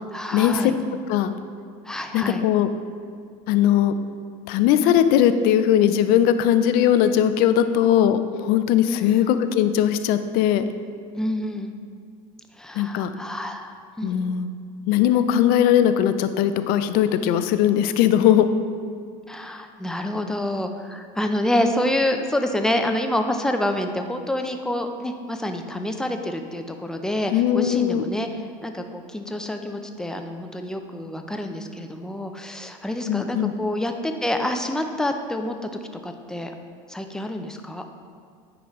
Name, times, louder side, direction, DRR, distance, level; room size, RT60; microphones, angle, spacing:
voice 1, 0.1-0.8 1.8-2.4 8.9-9.3 11.1-11.7 12.6-14.3 19.3-35.5 36.0-36.5 36.9-37.9, left 1 dB, 5° left, 5 dB, 0.5 m, -27 dB
voice 2, 2.1-2.7 3.5-3.9 4.5-10.7 12.8-13.1 14.0-14.5 14.9-18.5 27.3-28.0 33.1-33.5, left 10 dB, 60° left, 11 dB, 0.5 m, -19 dB
9.2 x 4.9 x 3.1 m, 2.3 s
supercardioid pair, 120°, 17 cm